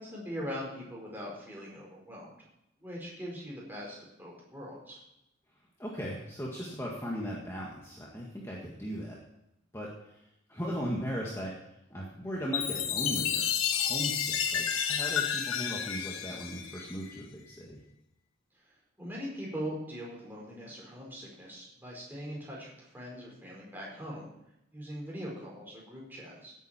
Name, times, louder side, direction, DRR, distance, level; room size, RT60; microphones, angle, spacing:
voice 1, 0.0-2.3 2.8-5.0 18.6-24.3 24.7-26.5, equal, 10° right, -4 dB, 4.7 m, -41 dB
voice 2, 5.8-9.2 9.7-10.2 10.5-11.5 11.9-17.8, equal, 15° left, -4 dB, 1.7 m, -37 dB
Chime, 12.5-17.2, left 8 dB, 85° left, 1.2 m, -31 dB
17.0 x 9.2 x 4.4 m, 0.83 s
head